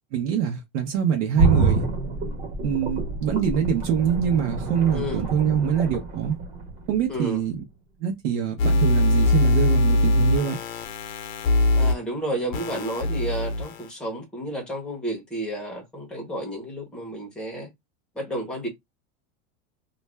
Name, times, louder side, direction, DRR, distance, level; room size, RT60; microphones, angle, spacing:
voice 1, 0.1-1.9 2.6-6.4 6.9-7.6 8.0-10.6, right 8 dB, 60° right, 0.8 m, -24 dB
sound 1, 1.4-7.2 7.6-7.7, right 3 dB, 45° right, 1.2 m, -27 dB
voice 2, 4.9-5.2 7.1-7.4 11.8-17.7 18.2-18.7, right 1 dB, ahead, 0.7 m, -31 dB
sound 2, 8.6-11.9 12.5-13.9, left 1 dB, 75° left, 0.7 m, -21 dB
2.5 x 2.2 x 3.2 m
supercardioid pair, 165°, 41 cm